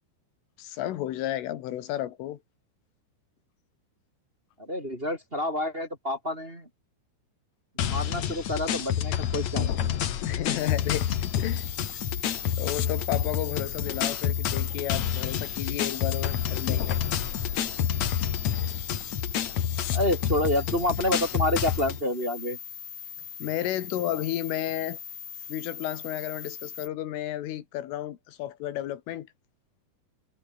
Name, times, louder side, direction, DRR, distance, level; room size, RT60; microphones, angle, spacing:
voice 1, 0.6-2.4 10.2-11.7 12.6-17.0 23.4-25.0 25.5-29.3, left 13 dB, 90° left, 4.4 m, -32 dB
voice 2, 4.6-6.7 7.8-10.0 19.9-22.6, left 1 dB, 15° right, 3.2 m, -28 dB
sound 1, 7.8-22.0, left 10 dB, 65° left, 1.8 m, -29 dB
sound 2, 10.6-26.9, left 7 dB, 45° left, 4.7 m, -40 dB
omnidirectional pair, 5.6 m